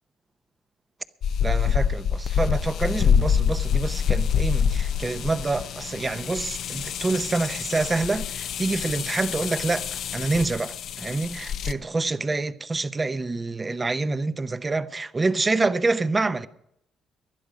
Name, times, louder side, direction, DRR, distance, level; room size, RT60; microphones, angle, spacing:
sound 1, 1.2-11.7, left 7 dB, 70° left, 0.6 m, -26 dB
voice 1, 1.4-16.5, right 3 dB, 25° right, 0.7 m, -27 dB
19.5 x 11.5 x 5.1 m
cardioid pair, 90°, 0 cm